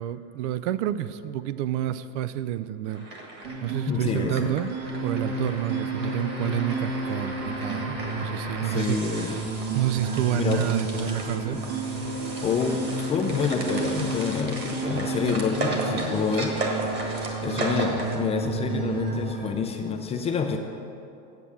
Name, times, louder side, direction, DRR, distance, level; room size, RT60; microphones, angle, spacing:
voice 1, 0.0-3.0 3.6-4.7 5.0-9.0 9.7-11.6, right 13 dB, 70° right, 14 dB, 0.5 m, -29 dB
sound 1, 2.9-18.2, right 2 dB, 30° right, 1.5 m, -35 dB
sound 2, 3.4-19.4, right 2 dB, 85° right, 2.5 m, -32 dB
voice 2, 3.9-4.5 8.6-9.4 10.3-10.7 12.4-12.8 13.1-16.5 17.4-20.6, left 5 dB, 20° left, 4 dB, 0.4 m, -27 dB
8.3 x 7.5 x 7.0 m, 2.7 s
supercardioid pair, 155°, 37 cm